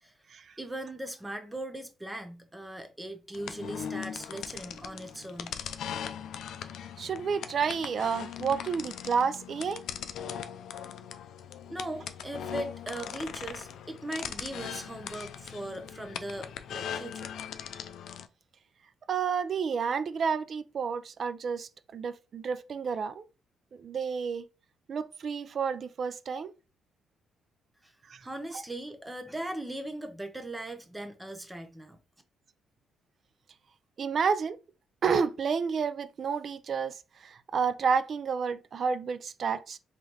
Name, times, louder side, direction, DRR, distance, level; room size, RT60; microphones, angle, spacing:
voice 1, 0.6-5.6 11.7-17.3 27.8-27.9 28.2-32.0, right 1 dB, 10° right, 0.7 m, -39 dB
sound 1, 3.3-18.3, left 8 dB, 75° left, 0.4 m, -40 dB
voice 2, 7.0-9.8 19.1-23.2 23.7-24.5 24.9-26.5 28.1-28.2 34.0-34.6 35.0-39.8, right 6 dB, 50° right, 0.4 m, -30 dB
3.7 x 3.2 x 2.9 m
cardioid pair, 90°, 0 cm